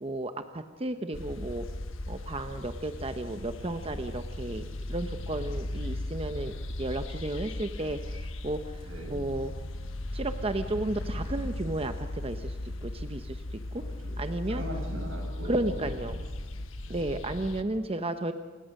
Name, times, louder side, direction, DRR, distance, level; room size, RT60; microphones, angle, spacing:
voice 1, 0.0-1.7 2.1-4.6 4.9-6.5 6.8-9.5 10.1-13.8 14.2-14.6 15.4-16.2 16.9-18.3, right 1 dB, 30° right, 8 dB, 0.9 m, -33 dB
sound 1, 1.1-17.6, left 1 dB, 85° left, 1.3 m, -37 dB
voice 2, 8.8-9.2 13.7-14.1 14.5-15.9 16.4-17.1, equal, 90° right, 2 dB, 7.4 m, -41 dB
28.0 x 17.0 x 6.6 m, 1.3 s
head